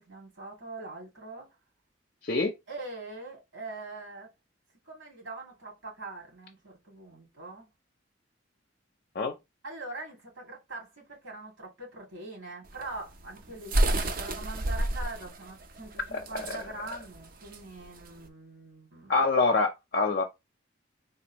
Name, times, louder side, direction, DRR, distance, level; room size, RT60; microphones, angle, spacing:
voice 1, 0.0-1.5 2.7-4.3 4.9-7.7 9.6-19.2, right 2 dB, 85° right, 2.2 m, -43 dB
sound 1, 12.7-18.2, right 1 dB, 45° right, 0.5 m, -30 dB
voice 2, 16.1-16.5 19.1-20.2, left 3 dB, 45° left, 0.5 m, -26 dB
3.7 x 2.6 x 2.9 m
head